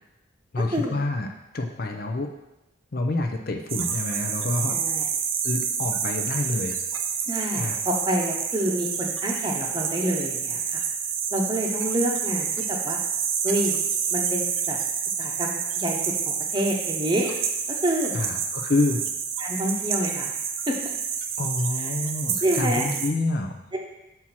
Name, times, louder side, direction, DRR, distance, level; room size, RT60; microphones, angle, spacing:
voice 1, 0.5-1.3 1.5-2.3 2.9-4.8 5.4-6.8 7.6-7.8 18.1-19.0 21.4-23.6, left 2 dB, 45° left, 4 dB, 0.6 m, -27 dB
sound 1, 3.7-23.1, right 7 dB, 80° right, 0.7 m, -28 dB
voice 2, 4.7-5.1 7.3-10.8 11.3-13.0 13.4-13.8 14.1-14.8 15.2-17.3 17.7-18.1 19.4-20.3 20.7-20.8 21.8-21.9 22.4-22.9 23.7-23.8, right 1 dB, 20° right, 0 dB, 0.9 m, -27 dB
6.0 x 4.5 x 5.7 m, 0.93 s
head